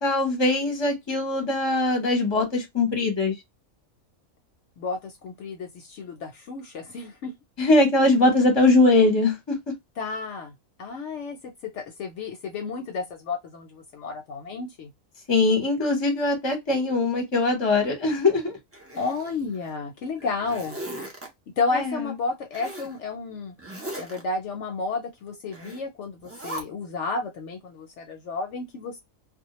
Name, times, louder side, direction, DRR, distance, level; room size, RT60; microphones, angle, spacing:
voice 1, 0.0-3.3 7.6-9.6 15.3-18.6 21.7-22.0, left 2 dB, 25° left, 0.7 m, -21 dB
voice 2, 4.8-7.3 10.0-14.9 18.9-21.1 21.6-23.5 24.0-29.0, left 4 dB, 65° left, 0.8 m, -32 dB
Zipper (clothing), 18.7-19.7 20.2-21.3 22.5-22.9 23.6-24.2 25.5-25.8 26.2-26.6, right 1 dB, 20° right, 0.4 m, -38 dB
2.2 x 2.2 x 2.9 m
omnidirectional pair, 1.4 m